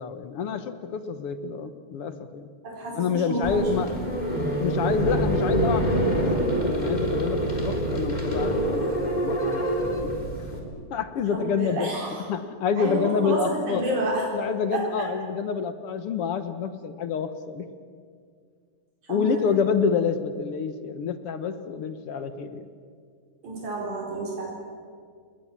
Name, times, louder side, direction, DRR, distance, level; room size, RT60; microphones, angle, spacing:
voice 1, 0.0-2.5 3.0-3.9 4.6-10.1 10.9-11.9 12.3-13.8 14.3-17.7 19.1-22.7, left 6 dB, 60° left, 10 dB, 1.8 m, -28 dB
voice 2, 2.6-3.9 11.3-12.3 12.8-14.3 14.7-15.1 19.0-19.6 23.4-24.5, right 1 dB, 80° right, -2 dB, 5.9 m, -30 dB
sound 1, 3.4-10.6, equal, 15° left, 3.5 m, -26 dB
29.5 x 21.0 x 7.4 m, 2.1 s
omnidirectional pair, 3.4 m